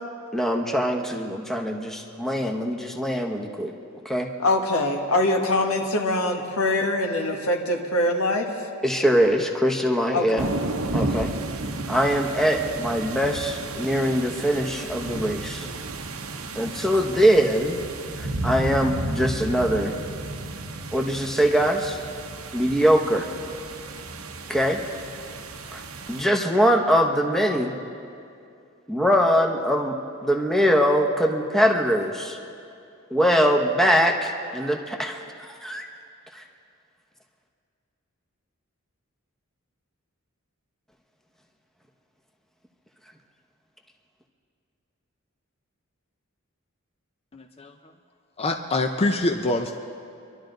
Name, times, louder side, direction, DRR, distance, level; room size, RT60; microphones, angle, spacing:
voice 1, 0.3-3.7 4.0-4.3 8.8-10.5 10.9-11.3 11.9-15.7 16.5-17.8 18.2-19.9 20.9-22.0 22.5-23.3 24.5-24.8 25.7-25.8 26.1-27.7 28.9-30.0 30.2-32.4 33.1-35.9 36.3-36.4, equal, ahead, 2 dB, 0.9 m, -22 dB
voice 2, 4.4-8.5 10.1-10.5, left 2 dB, 90° left, 2 dB, 1.5 m, -23 dB
sound 1, 10.4-26.2, right 2 dB, 85° right, 0.9 m, -33 dB
voice 3, 47.3-47.7 48.4-49.8, left 2 dB, 30° left, 4 dB, 0.5 m, -25 dB
25.0 x 12.0 x 3.9 m, 2.5 s
head